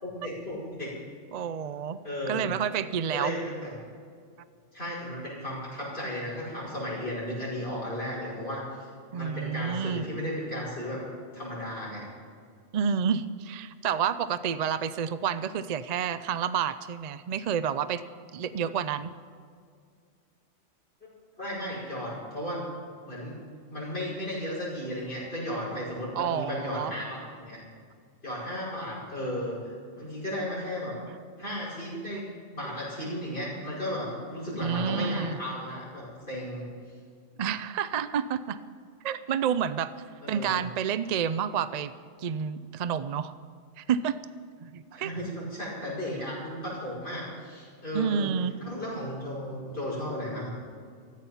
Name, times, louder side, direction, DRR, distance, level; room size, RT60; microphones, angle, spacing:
voice 1, 0.0-0.9 2.0-2.5 3.1-3.7 4.7-8.9 9.1-11.0 11.3-12.1 21.0-21.1 21.4-22.6 23.0-23.4 23.7-27.6 28.2-31.0 31.4-36.7 40.2-40.6 44.9-48.3 48.6-50.5, equal, 55° left, -7 dB, 5.6 m, -35 dB
voice 2, 1.3-2.0 2.3-3.3 9.1-10.1 12.7-18.0 18.3-19.1 26.1-26.9 34.6-35.4 37.4-38.6 39.0-39.9 40.3-41.9 42.2-43.3 43.8-44.2 44.6-45.1 47.9-48.5, right 7 dB, 50° right, 13 dB, 0.5 m, -29 dB
14.5 x 14.0 x 5.6 m, 2.2 s
omnidirectional pair, 1.2 m